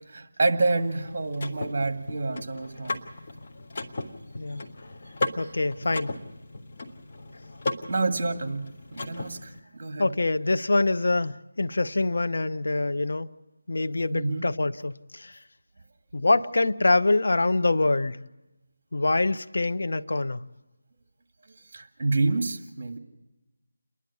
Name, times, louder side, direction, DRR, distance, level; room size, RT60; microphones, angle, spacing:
voice 1, 0.1-3.0 5.8-5.9 7.9-10.1 14.1-14.5 21.7-23.0, right 3 dB, 40° right, 2.0 m, -28 dB
Car / Mechanisms, 0.7-9.6, left 2 dB, 40° left, 1.4 m, -36 dB
voice 2, 4.4-4.7 5.4-6.2 10.0-13.3 13.7-15.4 16.1-18.2 18.9-20.4, left 2 dB, 65° left, 0.8 m, -25 dB
28.5 x 11.0 x 8.5 m
figure-of-eight pair, 165°, 0 cm